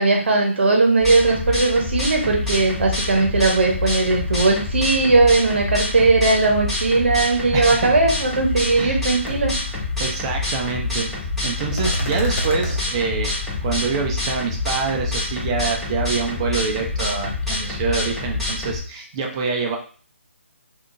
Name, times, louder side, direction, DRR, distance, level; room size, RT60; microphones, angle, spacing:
voice 1, 0.0-9.5, right 3 dB, 55° right, 1 dB, 0.8 m, -18 dB
sound 1, 1.0-18.8, left 3 dB, 5° left, 0.8 m, -27 dB
voice 2, 7.5-7.9 8.7-9.0 10.0-11.1 11.4-13.3 13.6-19.8, right 4 dB, 25° right, 1 dB, 0.4 m, -25 dB
sound 2, 8.3-8.4 8.7-9.0 9.3-9.4 11.7-12.8, equal, 55° left, 0.9 m, -26 dB
3.5 x 2.4 x 2.5 m, 0.42 s
figure-of-eight pair, 150°, 7 cm